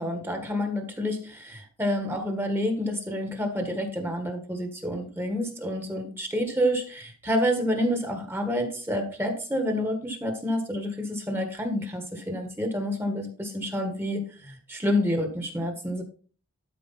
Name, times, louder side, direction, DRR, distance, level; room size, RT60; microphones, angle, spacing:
voice 1, 0.0-16.0, equal, 10° right, 4 dB, 1.6 m, -28 dB
12.0 x 5.0 x 4.2 m, 0.39 s
head